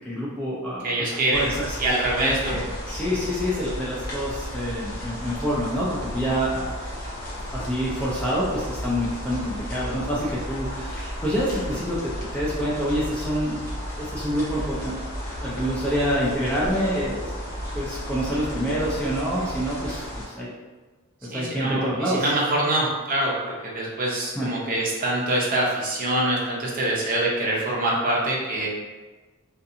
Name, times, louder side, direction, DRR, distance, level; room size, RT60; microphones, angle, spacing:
voice 1, 0.0-1.8 2.2-2.6 2.9-6.7 7.5-13.6 14.0-15.0 15.4-17.3 17.7-20.5 21.2-22.3 24.4-24.5, equal, 5° left, -7 dB, 0.4 m, -27 dB
voice 2, 0.8-1.5 1.8-2.6 21.3-28.7, right 1 dB, 40° right, -4 dB, 0.6 m, -24 dB
sound 1, 1.3-20.2, equal, 45° left, 0.8 m, -34 dB
2.5 x 2.4 x 2.6 m, 1.3 s
head